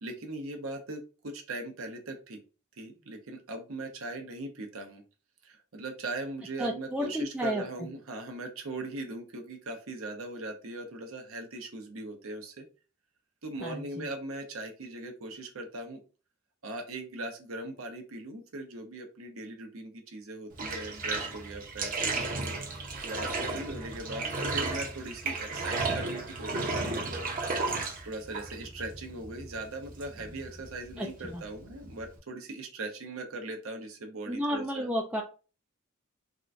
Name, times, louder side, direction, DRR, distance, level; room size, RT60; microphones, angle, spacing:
voice 1, 0.0-2.4 2.8-5.0 5.4-12.7 13.4-16.0 16.6-22.3 23.0-24.2 24.5-27.1 28.1-34.9, right 2 dB, 75° right, 4 dB, 0.8 m, -40 dB
voice 2, 6.6-7.9 13.6-14.1 31.0-31.4 34.3-35.2, equal, 5° right, -1 dB, 0.4 m, -32 dB
Bathtub (filling or washing), 20.5-32.2, right 3 dB, 40° right, 0.7 m, -34 dB
3.6 x 2.2 x 2.5 m, 0.34 s
head